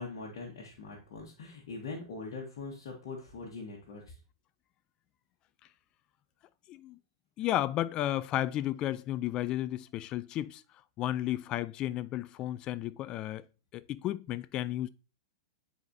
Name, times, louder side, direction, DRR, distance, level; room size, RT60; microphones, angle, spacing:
voice 1, 0.0-4.2, left 4 dB, 60° left, 1.4 m, -42 dB
voice 2, 7.4-10.6 11.0-13.5 13.7-14.9, left 13 dB, 35° left, 0.4 m, -33 dB
9.3 x 4.2 x 2.7 m
hypercardioid pair, 105°, 2 cm